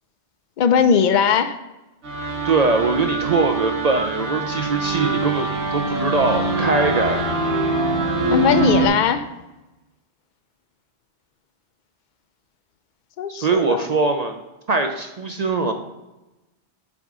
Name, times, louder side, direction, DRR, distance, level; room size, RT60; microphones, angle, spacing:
voice 1, 0.6-1.6 8.3-9.3 13.2-13.9, left 7 dB, 55° left, 8 dB, 0.6 m, -19 dB
sound 1, 2.0-8.9, right 2 dB, 85° right, 1.4 m, -23 dB
voice 2, 2.4-7.2 13.3-14.4 14.7-15.7, right 3 dB, 50° right, 5 dB, 0.5 m, -21 dB
7.0 x 3.8 x 4.7 m, 1.0 s
omnidirectional pair, 1.1 m